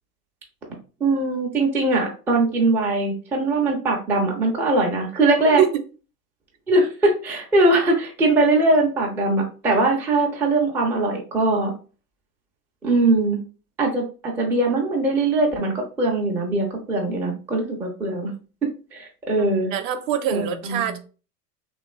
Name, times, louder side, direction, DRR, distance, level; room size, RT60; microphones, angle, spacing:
voice 1, 1.0-5.6 6.7-11.7 12.8-13.4 13.8-18.3 18.9-19.7 20.3-21.0, right 2 dB, 5° right, -1 dB, 0.3 m, -21 dB
voice 2, 19.4-21.0, right 9 dB, 55° right, 8 dB, 0.6 m, -24 dB
2.9 x 2.3 x 2.3 m, 0.36 s
hypercardioid pair, 85°, 47 cm